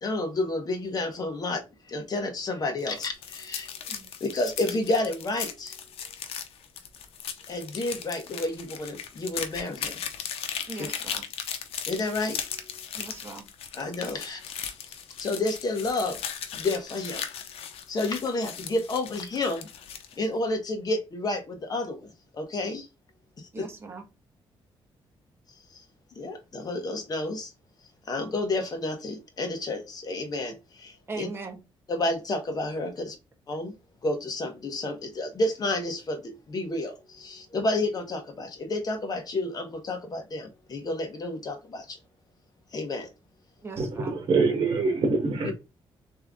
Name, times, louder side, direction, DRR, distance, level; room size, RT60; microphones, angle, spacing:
voice 1, 0.0-3.7 4.2-5.8 7.5-10.0 10.8-10.9 11.9-12.8 13.7-14.4 14.9-16.2 16.5-17.2 17.9-19.7 20.2-22.9 23.4-23.7 25.7-25.8 26.1-27.5 28.1-31.3 31.9-33.2 33.5-33.7 34.0-42.0 42.7-43.1 45.4-45.5, left 2 dB, 40° left, 1.3 m, -30 dB
sound 1, 2.8-20.2, left 8 dB, 90° left, 0.7 m, -37 dB
voice 2, 10.7-11.2 12.9-13.5 23.5-24.0 31.1-31.6 32.9-33.0 43.6-44.2, right 3 dB, 25° right, 1.3 m, -39 dB
voice 3, 43.8-45.5, right 4 dB, 55° right, 1.5 m, -25 dB
3.6 x 3.3 x 3.7 m
cardioid pair, 100°, 10 cm